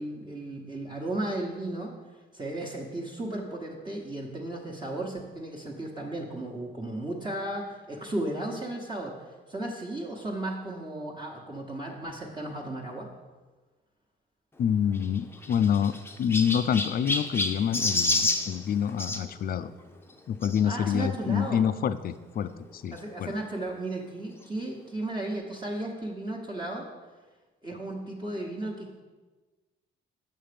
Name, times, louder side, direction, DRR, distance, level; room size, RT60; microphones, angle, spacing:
voice 1, 0.0-1.9 2.3-13.1 20.6-21.7 22.9-26.8 27.6-29.0, right 1 dB, 20° right, -3 dB, 1.1 m, -35 dB
voice 2, 14.6-19.7 20.3-23.3, left 8 dB, 50° left, 13 dB, 0.4 m, -27 dB
Chirp tweet, 14.9-19.2 20.4-20.6 21.3-21.4 21.6-21.7 23.0-23.1, left 2 dB, 10° left, 0.7 m, -29 dB
6.7 x 5.7 x 5.1 m, 1.3 s
cardioid pair, 90°, 20 cm